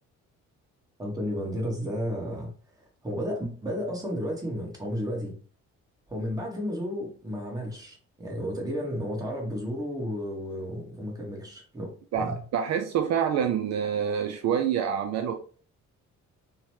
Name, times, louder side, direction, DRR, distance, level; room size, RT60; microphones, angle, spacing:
voice 1, 1.0-2.5 3.0-5.3 6.1-11.9 12.1-12.3, equal, 10° right, 1.2 m, -32 dB
voice 2, 12.1-15.4, right 8 dB, 60° right, 0.4 m, -27 dB
2.8 x 2.1 x 3.0 m
cardioid pair, 90°, 30 cm